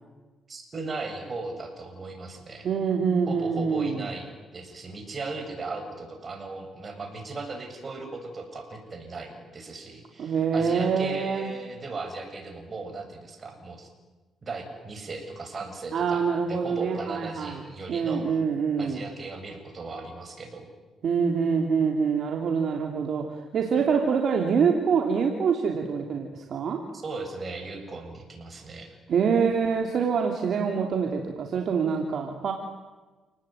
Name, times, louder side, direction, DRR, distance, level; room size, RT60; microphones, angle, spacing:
voice 1, 0.5-2.7 3.3-13.9 14.4-18.3 18.8-20.7 23.6-23.8 26.9-28.9, right 3 dB, 35° right, 4 dB, 7.7 m, -37 dB
voice 2, 2.6-4.1 10.2-11.5 15.9-17.6 17.9-19.0 21.0-26.8 29.1-32.5, right 6 dB, 60° right, 2 dB, 3.0 m, -25 dB
29.5 x 19.0 x 9.4 m, 1.3 s
cardioid pair, 90°, 0 cm